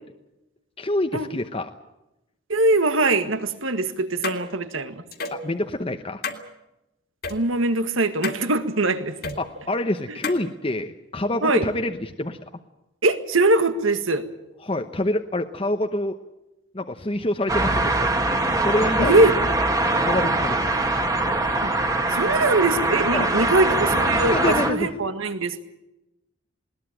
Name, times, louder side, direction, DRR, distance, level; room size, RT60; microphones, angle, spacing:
voice 1, 0.8-1.7 5.3-6.2 9.4-12.4 14.6-16.2 16.7-18.1 18.5-19.3 20.0-20.6 23.1-23.3 24.3-25.0, left 1 dB, 25° left, 6 dB, 0.9 m, -26 dB
voice 2, 2.5-5.0 7.3-9.4 11.4-11.6 13.0-14.2 19.0-19.3 21.6-21.7 22.1-25.6, right 2 dB, 80° right, 10 dB, 1.8 m, -22 dB
sound 1, 4.2-4.4 5.1-5.4 6.2-6.4 7.2-7.4 8.2-8.4 9.2-9.4 10.2-10.4, left 4 dB, 50° left, 2.2 m, -30 dB
sound 2, 17.5-24.7, right 2 dB, 15° right, 1.7 m, -22 dB
20.5 x 19.5 x 9.0 m, 0.94 s
head